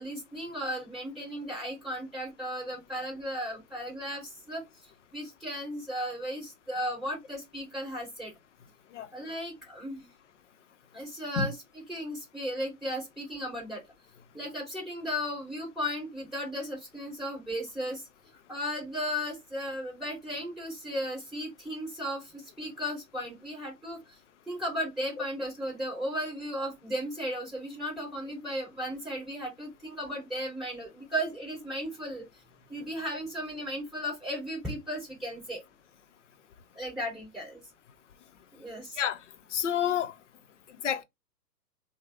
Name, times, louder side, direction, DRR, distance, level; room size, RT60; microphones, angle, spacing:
voice 1, 0.0-8.3 9.1-10.1 10.9-13.8 14.3-18.1 18.5-24.2 24.5-32.3 32.7-35.6 36.7-37.6 38.5-39.0, equal, ahead, 1.3 m, -35 dB
voice 2, 39.5-40.1 40.8-41.0, left 9 dB, 50° left, 0.5 m, -28 dB
3.2 x 2.0 x 3.3 m
figure-of-eight pair, 120°, 50 cm